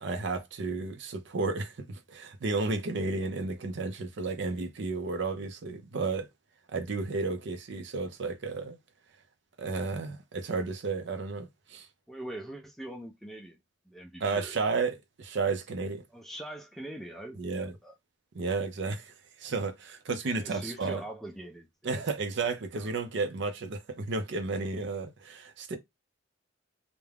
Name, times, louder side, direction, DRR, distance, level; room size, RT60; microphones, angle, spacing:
voice 1, 0.0-6.3 6.7-8.8 9.6-11.9 14.2-16.0 17.4-17.7 18.3-19.1 19.4-21.0 21.8-25.8, right 3 dB, 60° right, 0.5 m, -32 dB
voice 2, 12.1-13.6 13.9-14.6 16.1-17.9 20.3-22.0 22.8-22.9, right 1 dB, ahead, 0.4 m, -43 dB
2.4 x 2.1 x 3.2 m
head